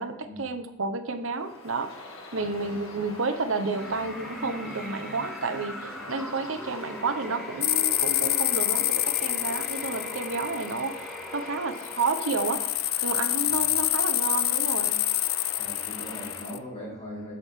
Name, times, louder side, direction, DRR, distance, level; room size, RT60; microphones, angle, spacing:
voice 1, 0.0-1.9 2.3-12.6 13.0-15.0, right 4 dB, 70° right, 8 dB, 1.0 m, -31 dB
Bird vocalization bird call bird song, 1.3-16.6, left 2 dB, 85° left, 2.0 m, -43 dB
voice 2, 2.3-2.9 13.4-13.6 15.5-17.3, left 1 dB, 30° left, -7 dB, 4.4 m, -41 dB
sound 1, 3.7-12.7, left 1 dB, ahead, 1.0 m, -41 dB
sound 2, 7.6-11.2 11.8-16.6, left 14 dB, 45° left, 0.4 m, -27 dB
15.5 x 6.3 x 3.7 m, 0.91 s
head